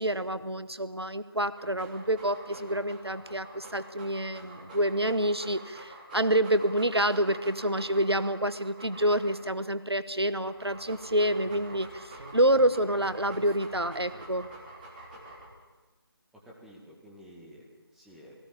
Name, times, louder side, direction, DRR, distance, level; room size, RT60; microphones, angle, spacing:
voice 1, 0.0-14.5, right 1 dB, 90° right, 13 dB, 1.3 m, -28 dB
Dog, 1.5-9.7 10.2-15.6, right 1 dB, 20° right, 3.1 m, -47 dB
Speech, 10.7-15.6, right 1 dB, 65° right, 2.3 m, -53 dB
voice 2, 16.3-18.4, equal, ahead, -4 dB, 2.1 m, -52 dB
18.5 x 17.5 x 8.9 m, 1.2 s
figure-of-eight pair, 155°, 13 cm